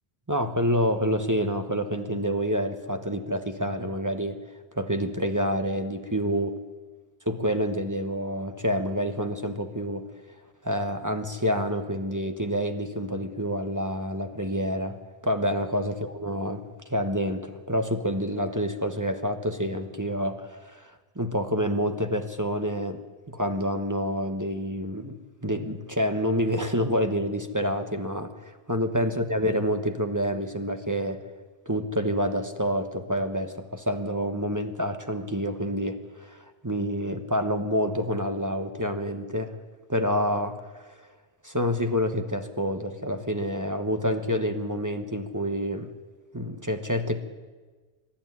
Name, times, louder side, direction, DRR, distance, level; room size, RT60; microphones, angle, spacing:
voice 1, 0.3-4.4 4.7-6.5 7.3-10.1 10.6-15.0 15.2-23.0 23.3-31.2 31.7-39.6 39.9-41.1 41.4-45.9 46.3-47.2, equal, 15° right, 6 dB, 1.1 m, -28 dB
24.0 x 11.5 x 9.6 m, 1.4 s
omnidirectional pair, 1.1 m